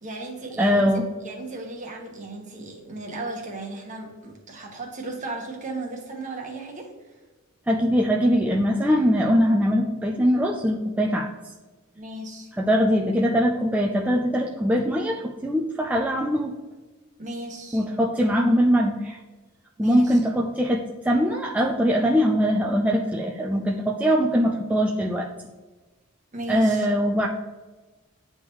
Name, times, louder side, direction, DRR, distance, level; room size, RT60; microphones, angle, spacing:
voice 1, 0.0-7.1 11.9-12.5 17.2-17.8 19.8-20.2 26.3-26.9, right 2 dB, 35° right, 1 dB, 1.2 m, -35 dB
voice 2, 0.6-1.1 7.7-11.3 12.6-16.5 17.7-19.2 19.8-25.3 26.5-27.3, equal, 5° right, -1 dB, 0.3 m, -22 dB
9.4 x 3.5 x 3.0 m, 1.2 s
head